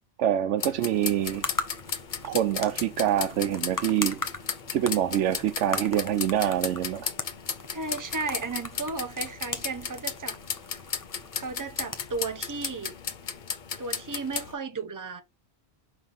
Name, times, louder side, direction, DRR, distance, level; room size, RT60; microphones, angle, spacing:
voice 1, 0.2-1.5 2.2-4.2 4.7-7.1, right 11 dB, 90° right, 1.0 m, -25 dB
sound 1, 0.6-14.5, left 6 dB, 50° left, 0.8 m, -35 dB
sound 2, 0.9-13.4, left 3 dB, 20° left, 0.7 m, -40 dB
voice 2, 7.7-10.4 11.4-12.9 13.8-15.2, right 4 dB, 20° right, 0.7 m, -34 dB
5.4 x 3.3 x 5.4 m
omnidirectional pair, 1.2 m